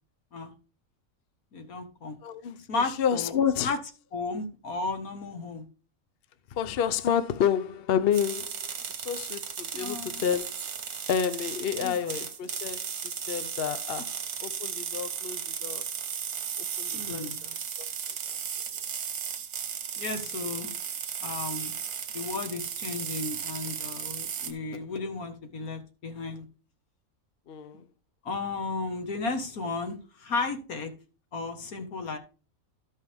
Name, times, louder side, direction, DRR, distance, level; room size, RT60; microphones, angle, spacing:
voice 1, 1.5-2.2 2.7-3.3 3.6-3.8 4.1-5.7 9.7-10.2 11.8-12.1 16.9-17.5 20.0-20.7 21.2-21.8 22.1-26.5 28.2-30.9 31.3-32.2, left 3 dB, 80° left, 1.9 m, -34 dB
voice 2, 2.2-3.8 6.5-8.6 8.9-10.5 11.1-14.1 14.4-15.8 16.6-17.5 17.8-17.9 27.5-27.8, left 8 dB, 55° left, 0.7 m, -29 dB
sound 1, 8.1-24.5, right 7 dB, 85° right, 1.6 m, -35 dB
13.0 x 5.5 x 3.4 m
omnidirectional pair, 1.5 m